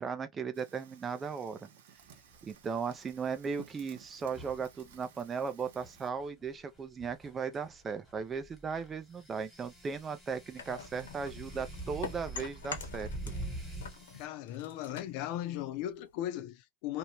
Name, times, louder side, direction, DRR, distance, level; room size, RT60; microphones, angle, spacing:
voice 1, 0.0-1.7 2.4-13.1, right 6 dB, 20° right, 0.5 m, -37 dB
Fire, 0.5-6.1, right 8 dB, 65° right, 0.9 m, -57 dB
sound 1, 2.3-2.5 4.2-14.3, right 1 dB, ahead, 1.3 m, -45 dB
sound 2, 10.6-13.5 13.8-16.2, left 6 dB, 80° left, 0.9 m, -45 dB
voice 2, 14.1-17.0, left 12 dB, 50° left, 0.6 m, -37 dB
2.7 x 2.2 x 2.9 m
hypercardioid pair, 115°, 0 cm